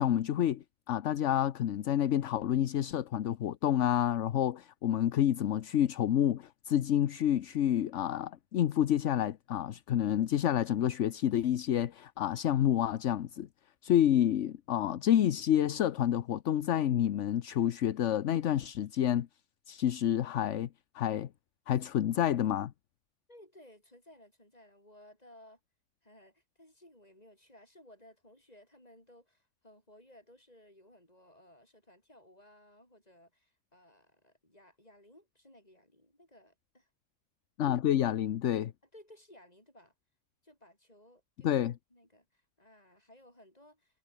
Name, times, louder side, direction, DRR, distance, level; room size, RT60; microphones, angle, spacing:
voice 1, 0.0-13.5 13.8-19.3 19.7-20.7 20.9-21.3 21.7-22.7 37.6-38.7 41.4-41.7, left 11 dB, 75° left, 1.1 m, -29 dB
voice 2, 23.3-25.6 26.0-36.9 38.9-39.9 40.4-41.7 41.9-44.0, left 1 dB, 30° left, 7.8 m, -59 dB
omnidirectional pair, 1.3 m